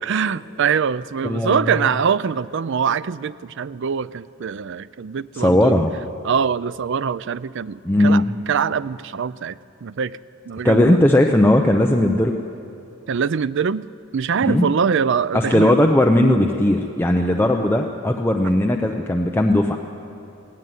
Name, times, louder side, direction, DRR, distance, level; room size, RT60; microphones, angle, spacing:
voice 1, 0.0-5.8 6.2-10.2 10.5-11.0 13.1-13.9 14.1-15.8, right 6 dB, 60° right, 17 dB, 0.4 m, -23 dB
voice 2, 1.2-1.9 5.3-5.9 7.8-8.3 10.6-12.3 14.4-14.7 15.3-19.8, left 1 dB, 10° left, 2 dB, 0.7 m, -17 dB
21.0 x 16.5 x 9.4 m, 2.8 s
head